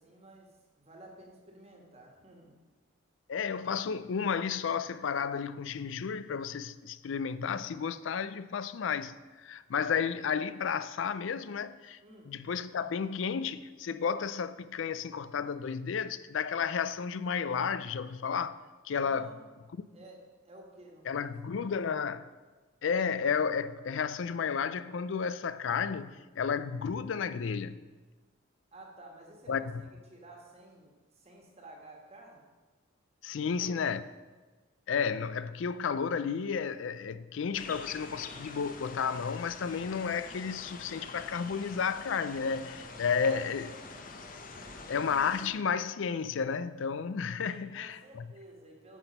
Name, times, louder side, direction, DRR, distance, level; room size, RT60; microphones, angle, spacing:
voice 1, 0.0-2.6 12.0-12.3 19.0-19.5 19.9-21.3 21.6-21.7 28.7-32.5 33.3-33.8 43.1-44.2 44.5-45.0 47.4-49.0, right 1 dB, 30° right, 1.4 m, -53 dB
voice 2, 3.3-12.0 12.3-18.6 18.8-19.3 21.1-22.3 22.8-27.8 29.5-29.7 33.2-34.0 34.9-43.7 44.9-48.3, left 6 dB, 70° left, 0.4 m, -32 dB
sound 1, 37.5-45.5, left 3 dB, 40° left, 0.8 m, -45 dB
9.1 x 6.0 x 5.5 m
head